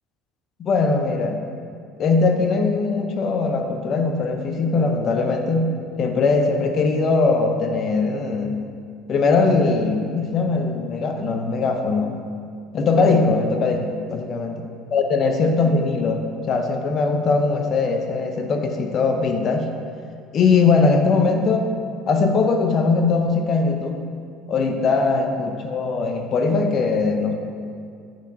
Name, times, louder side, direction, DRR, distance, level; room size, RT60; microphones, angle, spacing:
voice 1, 0.6-1.4 2.0-5.7 6.0-8.6 9.1-12.2 12.7-14.5 14.9-19.7 20.3-21.7 22.1-24.0 24.5-27.3, left 4 dB, 35° left, 4 dB, 0.8 m, -20 dB
7.7 x 4.7 x 5.3 m, 2.3 s
cardioid pair, 145°, 0 cm